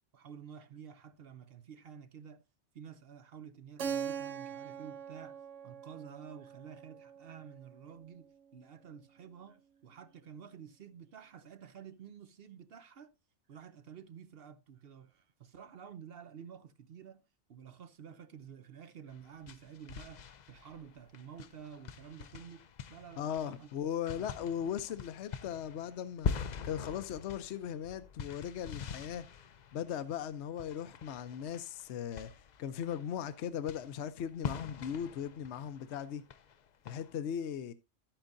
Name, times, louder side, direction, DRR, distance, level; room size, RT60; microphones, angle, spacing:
voice 1, 0.1-2.4 2.7-13.1 13.5-17.2 17.5-23.7 24.1-24.7, right 7 dB, 60° right, 0.8 m, -51 dB
Keyboard (musical), 3.8-8.3, right 7 dB, 80° right, 1.1 m, -42 dB
sound 1, 19.1-37.2, left 6 dB, 50° left, 0.6 m, -44 dB
voice 2, 23.2-29.2 29.7-32.3 32.6-36.2 36.8-37.7, left 9 dB, 70° left, 0.9 m, -38 dB
11.5 x 8.9 x 2.6 m
omnidirectional pair, 1.2 m